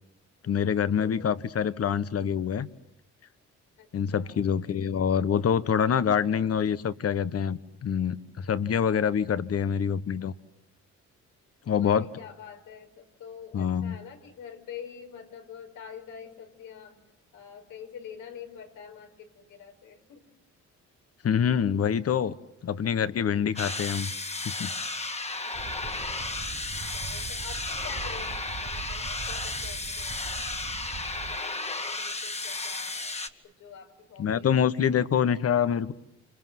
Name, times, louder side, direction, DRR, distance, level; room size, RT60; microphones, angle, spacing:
voice 1, 0.4-2.7 3.9-10.3 11.7-12.1 13.5-13.9 21.2-22.3 22.6-24.1 24.4-24.7 34.2-35.9, left 8 dB, 50° left, 15 dB, 1.5 m, -26 dB
voice 2, 1.0-1.5 3.8-4.5 11.8-17.0 17.3-20.3 25.4-25.7 26.9-33.2 33.4-34.6, left 7 dB, 85° left, 3 dB, 5.5 m, -46 dB
sound 1, 23.5-33.3, left 3 dB, 20° left, 1.9 m, -34 dB
sound 2, 25.5-31.4, right 6 dB, 30° right, 1.1 m, -41 dB
28.0 x 27.5 x 7.8 m, 0.86 s
cardioid pair, 90°, 30 cm